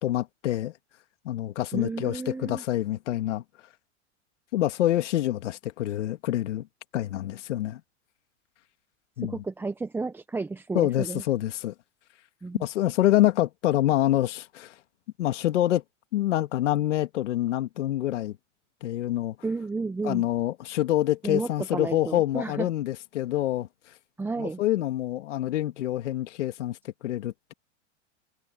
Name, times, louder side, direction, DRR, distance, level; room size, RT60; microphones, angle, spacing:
voice 1, 0.0-0.7 1.3-3.4 4.5-6.7 6.9-7.8 9.2-9.4 10.7-11.7 12.6-14.7 15.2-15.8 16.1-18.4 18.8-19.4 20.0-23.7 24.4-26.8 27.0-27.5, left 14 dB, 75° left, 2.3 m, -26 dB
voice 2, 1.7-2.6 9.2-11.2 12.4-12.7 19.4-20.3 21.2-22.7 24.2-24.6, right 3 dB, 5° right, 0.6 m, -32 dB
hypercardioid pair, 130°, 36 cm